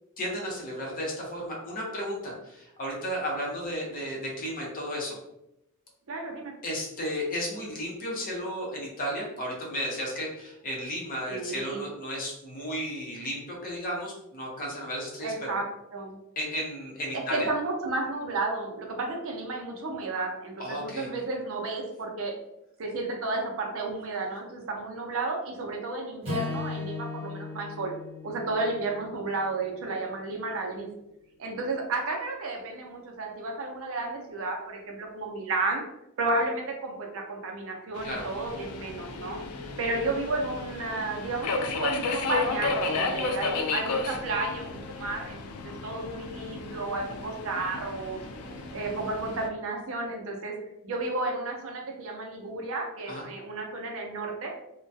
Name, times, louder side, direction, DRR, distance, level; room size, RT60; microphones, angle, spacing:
voice 1, 0.2-5.2 6.6-15.5 16.4-17.5 20.6-21.1 38.0-38.2 48.4-49.0 53.1-53.2, equal, 40° left, -3 dB, 0.7 m, -34 dB
voice 2, 6.1-6.5 11.3-11.9 15.2-15.6 15.9-16.2 17.1-22.4 22.8-27.9 28.2-30.9 31.4-35.8 36.2-39.4 39.8-45.4 45.8-48.2 48.7-50.5 50.8-54.5, right 2 dB, 65° right, 1 dB, 0.5 m, -32 dB
Acoustic guitar / Strum, 26.2-30.5, left 3 dB, 25° right, 1.0 m, -38 dB
Subway metro underground, 38.0-49.5, left 4 dB, 85° left, 0.3 m, -33 dB
2.2 x 2.2 x 2.6 m, 0.86 s
head